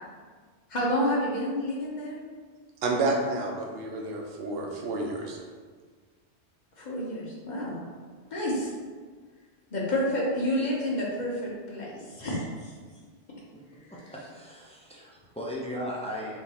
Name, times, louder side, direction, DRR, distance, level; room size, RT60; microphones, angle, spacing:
voice 1, 0.7-2.2 6.8-7.8 8.3-8.7 9.7-12.7, equal, 40° left, -5 dB, 1.0 m, -29 dB
voice 2, 2.8-5.4, right 2 dB, 65° right, 0 dB, 0.9 m, -29 dB
voice 3, 13.9-16.4, equal, 10° left, -5 dB, 0.4 m, -37 dB
3.7 x 2.9 x 4.2 m, 1.5 s
omnidirectional pair, 1.2 m